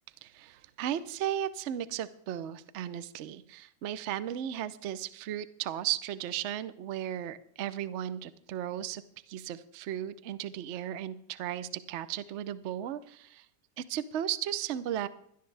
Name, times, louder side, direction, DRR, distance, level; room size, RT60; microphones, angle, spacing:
voice 1, 0.2-9.0 9.3-13.5 13.8-15.1, right 11 dB, 70° right, 15 dB, 0.6 m, -35 dB
17.0 x 12.5 x 3.3 m, 0.70 s
omnidirectional pair, 1.9 m